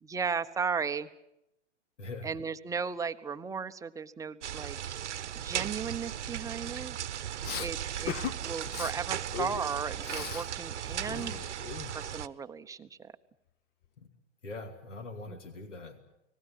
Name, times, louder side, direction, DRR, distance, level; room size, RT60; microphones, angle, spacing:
voice 1, 0.0-1.1 2.2-4.8 5.4-7.0 7.6-11.5 11.9-13.1 15.3-15.4, right 6 dB, 10° right, 9 dB, 0.8 m, -36 dB
voice 2, 2.0-2.3 14.0-14.1 14.4-16.0, left 2 dB, 80° left, 8 dB, 2.7 m, -42 dB
sound 1, 4.4-12.3, right 10 dB, 70° right, 1.0 m, -37 dB
Respiratory sounds, 7.4-7.7 8.1-8.3 8.6-8.9 9.3-10.5 10.8-12.2, left 9 dB, 25° left, 0.9 m, -38 dB
30.0 x 20.0 x 7.4 m, 0.85 s
figure-of-eight pair, 110°, 36 cm